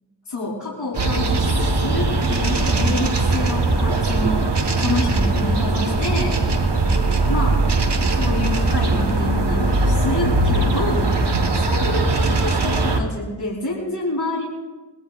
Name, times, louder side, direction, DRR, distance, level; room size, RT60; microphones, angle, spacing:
voice 1, 0.3-6.4 7.3-7.6 8.1-11.3 11.6-14.4, left 2 dB, 80° left, -5 dB, 3.2 m, -27 dB
sound 1, 0.9-13.0, right 2 dB, 90° right, 1.4 m, -20 dB
22.5 x 21.5 x 2.4 m, 1.2 s
wide cardioid pair, 55°, 40 cm